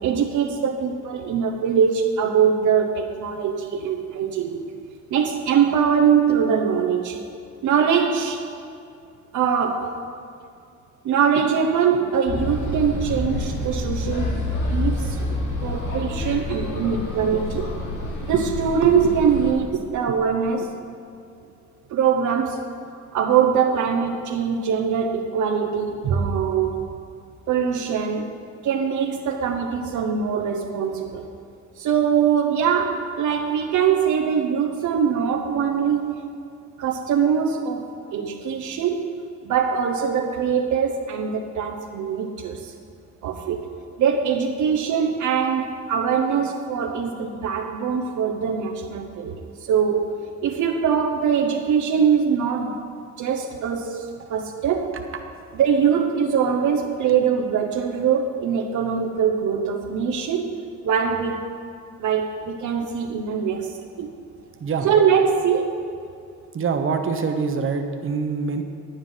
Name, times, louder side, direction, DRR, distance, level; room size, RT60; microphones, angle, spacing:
voice 1, 0.0-4.7 5.1-7.2 7.6-8.5 9.3-10.0 11.0-14.4 14.7-15.3 15.6-17.7 18.2-20.7 21.9-22.6 23.1-26.9 27.5-28.3 28.6-31.3 31.8-36.2 36.8-39.1 39.4-42.7 43.2-43.7 44.0-50.1 50.4-52.8 53.2-55.0 55.5-60.5 60.8-61.5 62.0-64.1 64.8-65.8, right 7 dB, 75° right, 3 dB, 0.9 m, -22 dB
sound 1, 12.3-19.5, left 2 dB, 75° left, 2.2 m, -28 dB
voice 2, 64.6-64.9 66.5-68.6, right 5 dB, 45° right, 5 dB, 1.1 m, -25 dB
10.0 x 9.0 x 5.7 m, 2.4 s
cardioid pair, 90°, 30 cm